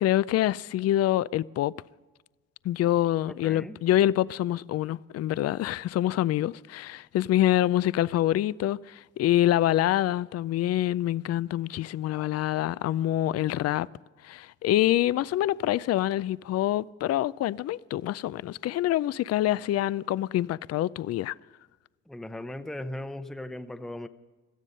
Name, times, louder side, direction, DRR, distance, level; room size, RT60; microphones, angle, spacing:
voice 1, 0.0-1.7 2.6-13.9 14.2-21.3, left 13 dB, 55° left, 0.4 m, -26 dB
voice 2, 3.3-3.8 22.1-24.1, left 1 dB, ahead, 0.7 m, -38 dB
17.5 x 13.0 x 5.4 m
cardioid pair, 90°, 30 cm